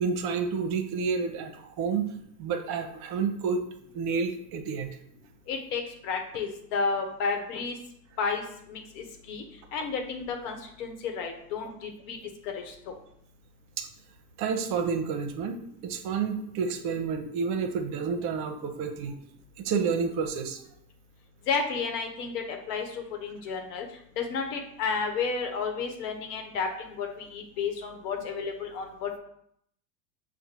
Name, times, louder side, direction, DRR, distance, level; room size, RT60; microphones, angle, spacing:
voice 1, 0.0-2.1 2.4-3.6 3.9-4.9 13.8-13.9 14.4-15.6 15.8-19.2 19.6-20.6, right 5 dB, 50° right, 6 dB, 0.7 m, -29 dB
voice 2, 5.5-7.7 8.2-8.4 8.7-9.4 9.7-12.2 12.4-13.0 21.5-23.9 24.2-29.1, left 5 dB, 70° left, 3 dB, 1.0 m, -32 dB
6.0 x 2.1 x 2.9 m, 0.70 s
hypercardioid pair, 90°, 49 cm